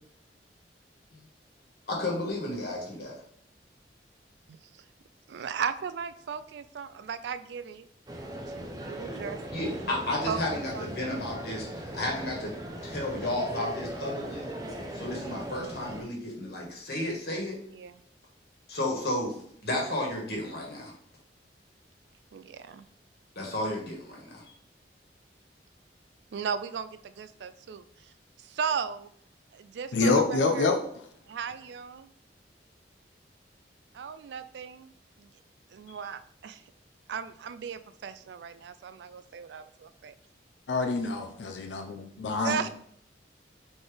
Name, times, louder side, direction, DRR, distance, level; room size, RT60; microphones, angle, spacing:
voice 1, 1.9-3.2 9.5-12.5 12.8-14.5 14.9-17.6 18.7-19.4 19.6-20.9 23.3-24.4 35.9-36.0, left 1 dB, 60° left, -2 dB, 1.5 m, -32 dB
voice 2, 5.3-7.9 8.4-9.8 10.3-11.1 17.7-18.0 22.3-22.9 26.3-29.1 29.5-30.7 31.3-32.1 33.9-35.3 35.7-36.7 37.1-40.1 42.4-42.7, right 6 dB, 70° right, 12 dB, 0.3 m, -37 dB
sound 1, 8.1-16.0, right 1 dB, 20° right, 0.6 m, -39 dB
voice 3, 29.9-30.8 40.7-42.7, left 3 dB, 85° left, 5 dB, 0.5 m, -26 dB
4.0 x 3.9 x 3.3 m, 0.65 s
head